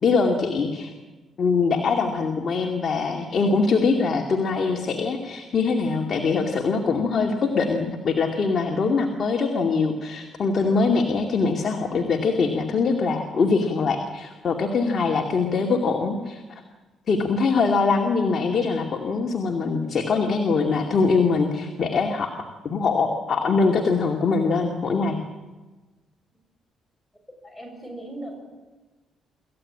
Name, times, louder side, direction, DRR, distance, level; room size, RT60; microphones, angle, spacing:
voice 1, 0.0-0.9 1.4-16.4 17.1-22.3 22.6-25.2, left 4 dB, 50° left, 2 dB, 2.4 m, -23 dB
voice 2, 27.4-28.4, right 1 dB, 5° left, 2 dB, 7.1 m, -37 dB
26.5 x 15.0 x 8.8 m, 1.2 s
cardioid pair, 90°, 0 cm